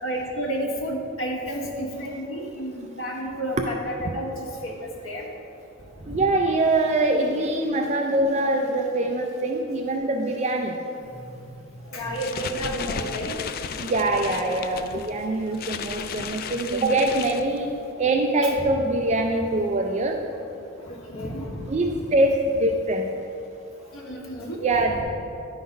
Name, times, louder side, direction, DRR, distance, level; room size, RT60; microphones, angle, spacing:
voice 1, 0.0-4.4 4.6-4.8 5.0-5.2 6.1-6.2 11.9-13.4 18.4-18.7 20.9-21.6 23.9-24.6 24.9-25.0, equal, 80° left, -1 dB, 1.3 m, -31 dB
voice 2, 6.1-10.8 11.9-12.0 13.8-20.2 21.7-23.1 24.6-25.0, right 2 dB, 35° right, 3 dB, 0.4 m, -23 dB
sound 1, 12.0-17.9, left 6 dB, 45° left, 0.3 m, -34 dB
10.5 x 3.9 x 5.2 m, 2.7 s
head